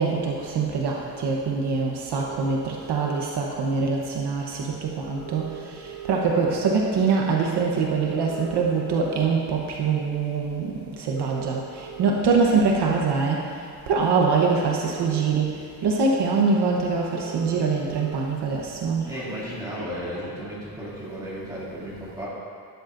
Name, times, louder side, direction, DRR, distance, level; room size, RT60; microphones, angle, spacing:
voice 1, 0.0-13.4 13.9-19.0, right 4 dB, 70° right, -1 dB, 1.1 m, -24 dB
sound 1, 2.2-3.2 4.4-4.5 4.7-4.8 5.0-6.5 6.9-7.2 8.0-9.2 9.9-10.1 11.0-12.2 13.4-13.5 14.0-15.2 15.9-16.0 16.2-16.3 16.6-16.7 16.9-18.2 18.5-20.7, right 7 dB, 10° left, 2.2 m, -40 dB
voice 2, 19.0-22.3, equal, 10° right, -9 dB, 2.7 m, -34 dB
12.0 x 10.5 x 2.6 m, 2.3 s
cardioid pair, 170°, 42 cm